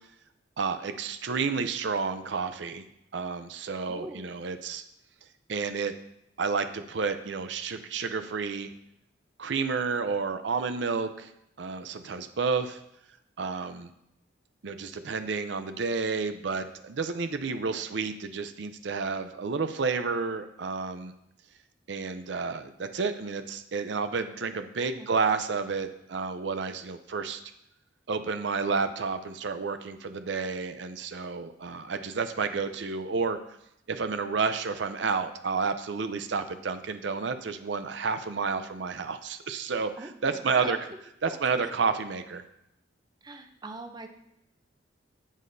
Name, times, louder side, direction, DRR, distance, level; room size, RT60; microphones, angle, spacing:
voice 1, 0.6-4.8 5.5-5.9 6.4-8.7 9.4-11.3 11.6-12.8 13.4-13.9 14.6-21.1 21.9-27.4 28.1-33.4 33.9-40.8 41.2-42.4, right 5 dB, 70° right, 9 dB, 0.5 m, -30 dB
voice 2, 3.9-4.3 24.8-25.2 40.0-40.8 41.3-41.7 43.2-44.1, right 2 dB, 20° right, 5 dB, 0.6 m, -42 dB
11.0 x 8.4 x 2.7 m, 0.82 s
head